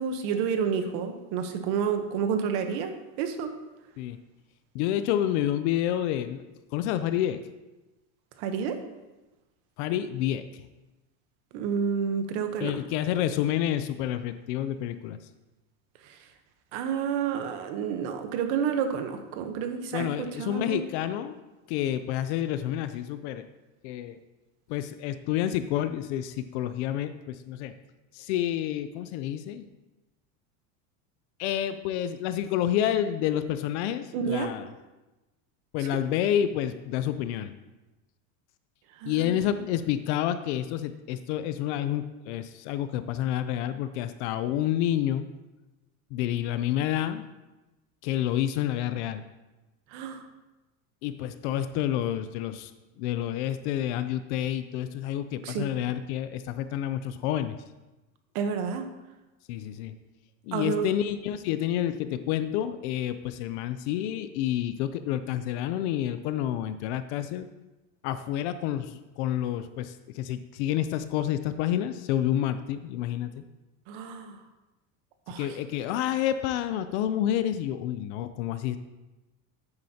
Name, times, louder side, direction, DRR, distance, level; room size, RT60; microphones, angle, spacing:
voice 1, 0.0-2.9 3.2-3.5 8.4-8.8 11.5-12.7 16.7-20.1 20.4-20.8 34.1-34.5 39.0-39.5 49.9-50.2 55.4-55.7 58.3-58.8 60.5-60.9 73.9-74.4 75.3-75.5, right 7 dB, 50° right, 7 dB, 1.0 m, -29 dB
voice 2, 4.7-6.4 6.7-7.4 9.8-10.7 12.6-15.2 19.9-21.4 21.7-23.4 23.8-24.2 24.7-27.7 28.1-29.6 31.4-34.7 35.7-37.5 39.1-45.3 46.1-47.2 48.0-49.2 51.0-52.7 53.0-57.6 59.5-59.9 60.5-67.5 68.0-73.4 75.4-78.8, left 11 dB, 55° left, 11 dB, 0.5 m, -29 dB
9.6 x 8.5 x 2.8 m, 1.1 s
cardioid pair, 175°, 41 cm